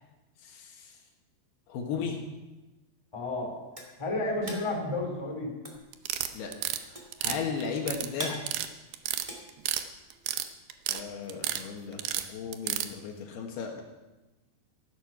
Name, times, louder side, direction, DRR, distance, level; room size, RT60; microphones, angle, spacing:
voice 1, 0.4-0.9 1.7-2.2 6.3-6.5 6.9-8.5 10.9-13.8, left 6 dB, 70° left, 2 dB, 3.3 m, -36 dB
voice 2, 3.1-3.5 4.0-5.5 7.2-7.4, left 2 dB, 10° left, 0 dB, 2.6 m, -31 dB
sound 1, 3.1-10.3, right 1 dB, 20° right, 0.8 m, -43 dB
sound 2, 5.9-6.8 7.1-8.1 8.3-8.7 8.9-9.8 10.1-11.0 11.3-11.6 12.0-12.9, right 12 dB, 75° right, 2.5 m, -31 dB
15.0 x 11.5 x 5.9 m, 1.1 s
omnidirectional pair, 4.9 m